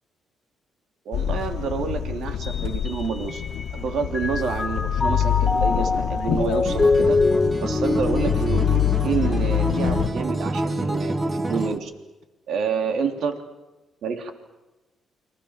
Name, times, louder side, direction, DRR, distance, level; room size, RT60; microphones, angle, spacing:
voice 1, 1.0-3.4 3.7-7.2 7.6-11.2 11.5-11.9 12.5-13.4 14.0-14.3, right 5 dB, 70° right, 6 dB, 3.2 m, -28 dB
sound 1, 1.1-10.1, left 9 dB, 75° left, 1.7 m, -26 dB
Mallet percussion, 2.4-3.8 4.1-9.6, left 3 dB, 25° left, 1.2 m, -25 dB
Acoustic guitar, 6.7-11.8, right 2 dB, 20° right, 1.8 m, -28 dB
29.5 x 24.0 x 7.4 m, 1.1 s
cardioid pair, 90°, 0 cm